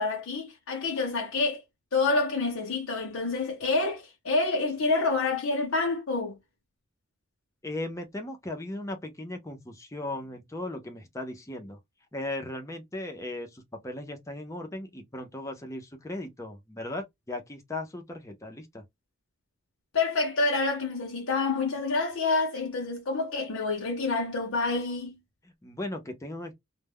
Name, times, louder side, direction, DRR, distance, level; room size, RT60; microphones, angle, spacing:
voice 1, 0.0-1.6 1.9-6.4 19.9-25.2, left 3 dB, 75° left, 0.7 m, -28 dB
voice 2, 7.6-11.8 12.1-18.8 25.4-26.5, left 1 dB, 15° left, 0.5 m, -37 dB
2.2 x 2.1 x 3.4 m
head